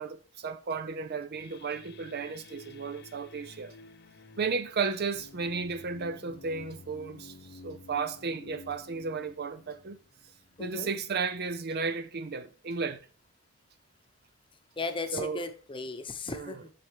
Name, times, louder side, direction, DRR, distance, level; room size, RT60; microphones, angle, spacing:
voice 1, 0.0-3.7 4.4-10.0 10.6-13.0 15.1-15.4 16.3-16.6, right 5 dB, 45° right, 0.6 m, -34 dB
sound 1, 1.4-10.7, left 3 dB, 45° left, 0.6 m, -51 dB
voice 2, 10.6-10.9 14.8-16.7, left 3 dB, 25° left, 0.9 m, -36 dB
7.7 x 6.5 x 3.5 m
head